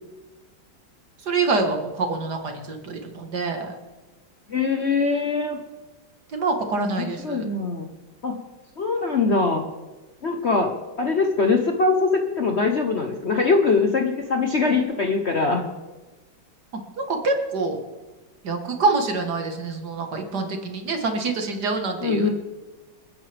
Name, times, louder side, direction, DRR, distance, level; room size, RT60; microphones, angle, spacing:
voice 1, 1.3-3.8 6.3-7.4 16.7-17.8 18.4-22.3, right 3 dB, 55° right, 4 dB, 2.0 m, -26 dB
voice 2, 4.5-5.6 6.9-7.9 8.2-8.4 8.8-9.6 10.2-15.7 22.0-22.3, left 4 dB, 45° left, 3 dB, 1.0 m, -22 dB
28.5 x 9.7 x 3.5 m, 1.2 s
omnidirectional pair, 2.2 m